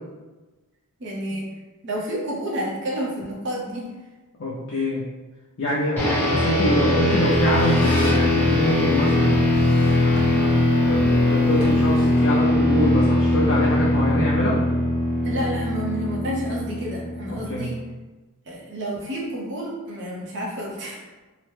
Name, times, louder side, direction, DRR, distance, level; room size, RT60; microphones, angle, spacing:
voice 1, 1.0-1.5 1.8-3.9 4.7-4.9 15.2-17.8 18.5-21.0, equal, 55° right, -3 dB, 0.7 m, -30 dB
voice 2, 4.4-5.0 5.6-9.4 10.0-14.6 17.3-17.7, left 1 dB, 60° left, -5 dB, 0.5 m, -25 dB
sound 1, 6.0-17.6, left 1 dB, 10° left, 0.8 m, -21 dB
Squeak, 7.0-12.5, left 1 dB, 85° left, 1.0 m, -37 dB
2.9 x 2.1 x 3.2 m, 1.2 s
head